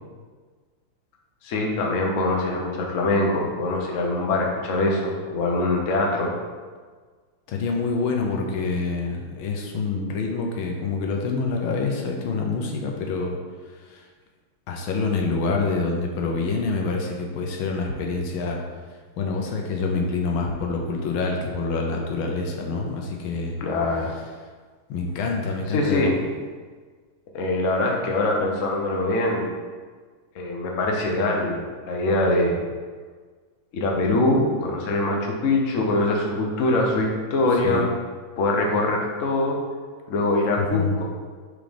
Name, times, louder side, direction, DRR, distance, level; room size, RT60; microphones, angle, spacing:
voice 1, 1.4-6.3 23.6-24.1 25.7-26.2 27.3-29.5 30.3-32.6 33.7-37.9 38.4-39.6 40.1-41.0, left 2 dB, 60° left, 0 dB, 0.8 m, -23 dB
voice 2, 7.5-13.4 13.9-14.0 14.7-18.6 19.2-23.5 24.9-26.1 37.6-37.8 40.6-41.0, left 4 dB, 75° left, 1 dB, 1.5 m, -26 dB
5.1 x 3.7 x 5.0 m, 1.5 s
omnidirectional pair, 2.4 m